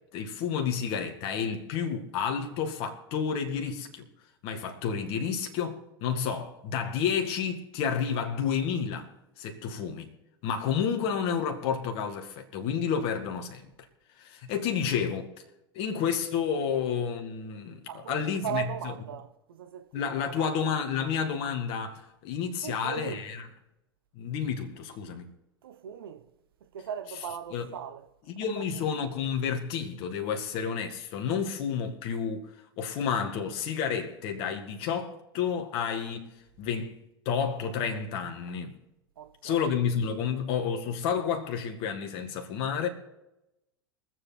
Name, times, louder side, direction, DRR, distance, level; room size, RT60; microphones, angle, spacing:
voice 1, 0.1-4.1 4.4-10.1 10.4-13.7 14.2-15.3 15.7-18.6 19.9-23.5 24.2-25.3 27.5-27.6 28.3-37.0 37.3-38.8 39.4-42.9, left 7 dB, 50° left, 2.0 m, -30 dB
voice 2, 17.9-20.5 22.6-23.3 25.6-26.3 26.6-28.1 28.6-28.7 39.2-39.7, right 9 dB, 70° right, 1.0 m, -38 dB
23.0 x 7.8 x 4.3 m
figure-of-eight pair, 85°, 13 cm